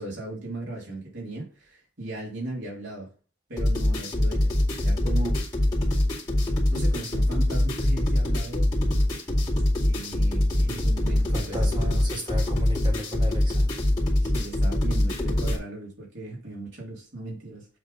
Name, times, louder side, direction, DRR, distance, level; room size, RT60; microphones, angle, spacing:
voice 1, 0.0-3.1 3.5-4.5 4.8-5.4 6.7-8.7 9.8-12.0 14.2-17.7, right 2 dB, 90° right, 3.1 m, -37 dB
sound 1, 3.6-15.6, left 1 dB, 20° left, 2.4 m, -24 dB
voice 2, 11.2-13.7, left 1 dB, 25° right, 1.9 m, -34 dB
8.0 x 3.6 x 5.3 m
head